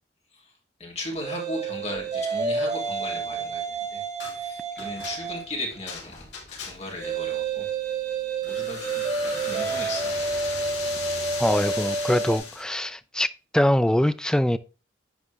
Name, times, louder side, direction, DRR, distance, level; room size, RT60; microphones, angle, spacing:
voice 1, 0.8-4.0 4.3-7.7 8.4-9.1 9.4-10.3, left 1 dB, 40° left, 2.9 m, -37 dB
sound 1, 1.2-5.6 7.0-12.4, right 4 dB, 40° right, 2.1 m, -29 dB
sound 2, 4.2-4.4 4.8-7.0 8.4-12.7, left 5 dB, 70° left, 3.4 m, -37 dB
voice 2, 11.4-13.3 13.5-14.6, left 1 dB, 5° left, 0.4 m, -23 dB
10.5 x 4.1 x 3.4 m
head